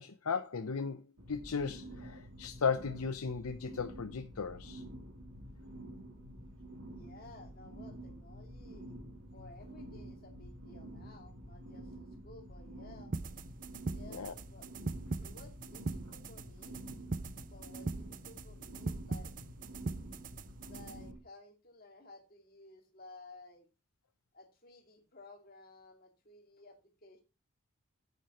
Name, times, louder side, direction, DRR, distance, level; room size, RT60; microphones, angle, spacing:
voice 1, 0.0-4.8 14.1-14.3, left 5 dB, 90° left, 0.7 m, -36 dB
sound 1, 1.2-21.2, right 1 dB, 75° right, 3.9 m, -49 dB
voice 2, 6.9-9.0 9.3-13.1 13.9-14.7 15.1-16.8 17.5-19.3 20.7-23.7 24.3-27.2, left 2 dB, 40° left, 2.4 m, -56 dB
sound 2, 13.1-21.1, right 3 dB, 35° right, 0.5 m, -41 dB
9.1 x 8.0 x 4.3 m
head